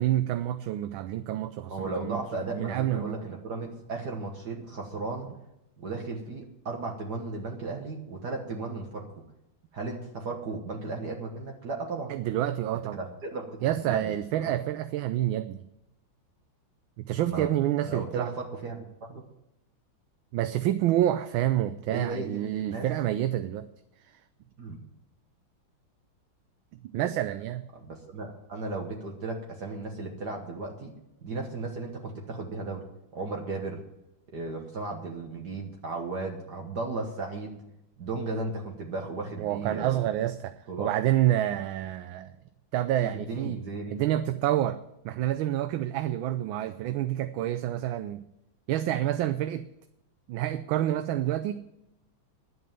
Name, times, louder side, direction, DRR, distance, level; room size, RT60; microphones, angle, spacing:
voice 1, 0.0-2.2 2.5-3.3 12.1-13.0 13.6-15.6 17.1-18.3 20.3-23.7 26.8-27.6 39.4-42.3 42.7-43.6 43.9-44.8 45.0-48.3 48.7-49.6 50.3-51.6, right 13 dB, 80° right, 11 dB, 1.4 m, -28 dB
voice 2, 1.7-5.3 5.8-9.1 9.7-12.2 12.9-14.6 17.2-17.5 17.8-18.8 19.1-19.2 21.9-22.9 24.6-24.8 27.8-30.9 31.2-32.8 33.1-33.8 34.3-37.6 38.0-40.1 40.7-40.9 43.1-44.0, right 3 dB, 55° right, 1 dB, 1.9 m, -35 dB
11.0 x 8.0 x 9.1 m, 0.86 s
omnidirectional pair, 2.2 m